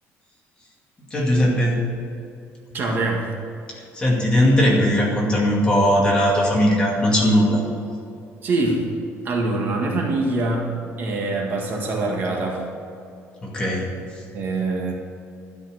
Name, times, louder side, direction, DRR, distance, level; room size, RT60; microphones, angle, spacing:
voice 1, 1.1-1.8 3.7-7.6 13.4-13.9, equal, 15° left, -3 dB, 2.3 m, -19 dB
voice 2, 2.7-3.3 8.4-8.9 9.2-10.7 11.0-12.7 14.3-14.9, right 2 dB, 40° right, 0 dB, 1.8 m, -24 dB
12.5 x 5.7 x 9.1 m, 2.6 s
cardioid pair, 170°, 5 cm